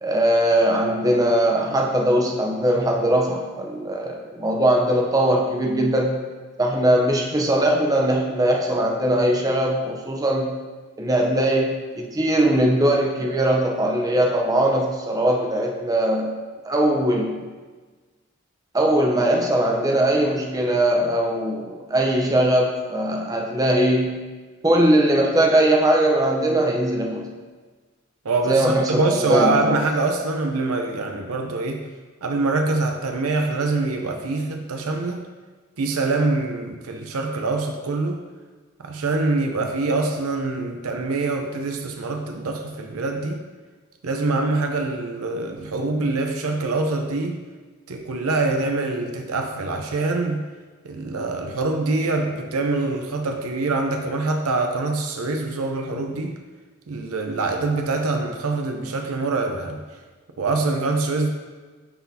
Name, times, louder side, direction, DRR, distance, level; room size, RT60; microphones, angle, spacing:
voice 1, 0.0-6.2 6.6-10.6 11.0-16.3 16.6-17.4 18.7-24.3 24.6-27.3 28.5-29.8, right 1 dB, 15° right, 0 dB, 0.7 m, -20 dB
voice 2, 28.2-31.8 32.2-35.2 35.8-38.2 38.8-43.4 44.0-47.4 47.9-50.4 50.8-56.4 56.9-59.8 60.4-61.3, right 3 dB, 90° right, 4 dB, 0.6 m, -24 dB
10.0 x 3.9 x 2.8 m, 1.4 s
head